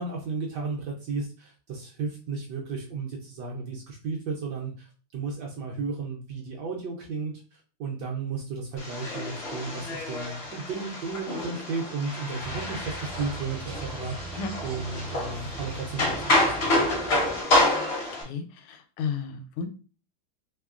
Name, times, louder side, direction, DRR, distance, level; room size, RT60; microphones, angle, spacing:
voice 1, 0.0-16.7, right 4 dB, 70° right, -1 dB, 1.0 m, -34 dB
sound 1, 8.8-18.2, left 1 dB, 55° left, 0.7 m, -28 dB
sound 2, 12.4-17.4, right 3 dB, 50° right, 0.7 m, -40 dB
voice 2, 18.3-19.7, left 5 dB, 80° left, 8 dB, 1.5 m, -33 dB
3.5 x 3.1 x 2.4 m, 0.37 s
omnidirectional pair, 2.4 m